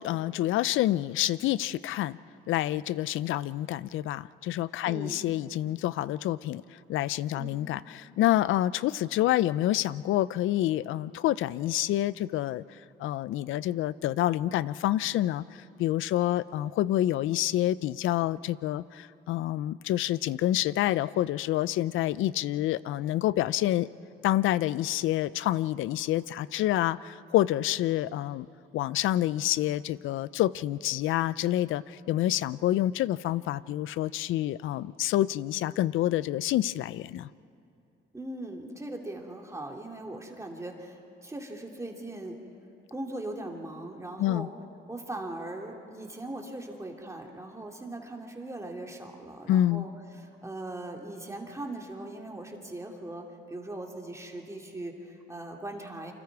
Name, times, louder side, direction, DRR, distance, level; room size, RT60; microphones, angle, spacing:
voice 1, 0.0-2.2 2.5-6.6 6.9-12.6 13.0-23.9 24.2-28.5 28.7-37.3 44.2-44.5 49.5-49.9, left 14 dB, 80° left, 18 dB, 0.5 m, -28 dB
voice 2, 4.9-5.2 7.3-7.7 38.1-42.4 42.9-44.5 44.9-49.9 50.2-56.1, right 2 dB, 15° right, 1 dB, 2.5 m, -40 dB
28.0 x 25.5 x 4.7 m, 2.5 s
cardioid pair, 90°, 20 cm